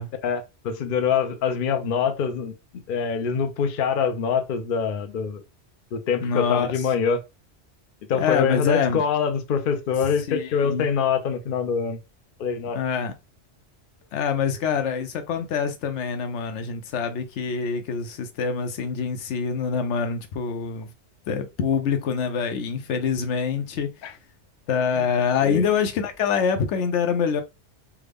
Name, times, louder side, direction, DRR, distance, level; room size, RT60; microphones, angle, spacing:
voice 1, 0.2-2.5 2.9-5.4 5.9-7.2 8.1-12.0 12.4-12.8 24.0-24.1 25.0-25.1 25.4-25.6, left 6 dB, 55° left, 0.7 m, -24 dB
voice 2, 6.2-6.9 8.2-9.0 10.3-10.9 12.7-13.1 14.1-20.9 21.3-23.9 24.7-27.4, left 6 dB, 80° left, 0.9 m, -25 dB
3.5 x 2.2 x 3.3 m
omnidirectional pair, 1.2 m